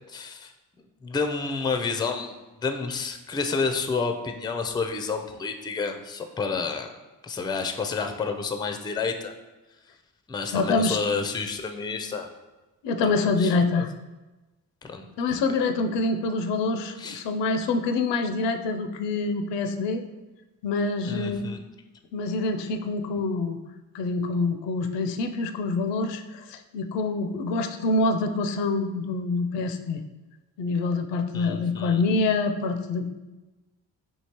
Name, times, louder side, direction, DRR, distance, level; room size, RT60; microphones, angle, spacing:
voice 1, 0.1-0.5 1.0-6.9 7.2-9.3 10.3-12.3 13.4-13.8 14.8-15.1 17.0-17.2 21.0-21.6 31.3-32.0, left 4 dB, 10° left, 6 dB, 0.4 m, -30 dB
voice 2, 10.5-11.0 12.8-13.9 15.2-20.0 20.6-21.5 22.1-23.6 23.9-30.0 30.6-33.1, left 3 dB, 80° left, 6 dB, 0.5 m, -26 dB
4.5 x 2.8 x 2.9 m, 1.1 s
supercardioid pair, 50°, 42 cm